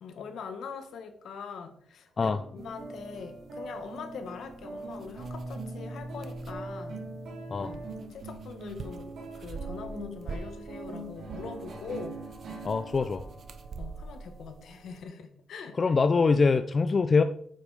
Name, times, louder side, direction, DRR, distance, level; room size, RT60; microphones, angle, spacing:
voice 1, 0.0-7.0 7.6-7.8 8.1-12.2 12.5-12.6 13.0-13.1 13.8-15.8, left 5 dB, 70° left, 7 dB, 1.3 m, -42 dB
sound 1, 2.2-15.0, right 2 dB, 75° right, 3.1 m, -42 dB
sound 2, 2.6-15.0, right 4 dB, 45° right, 0.7 m, -46 dB
voice 2, 12.6-13.2 15.8-17.2, left 4 dB, 30° left, 10 dB, 0.4 m, -24 dB
8.9 x 5.4 x 4.8 m, 0.62 s
cardioid pair, 145°, 0 cm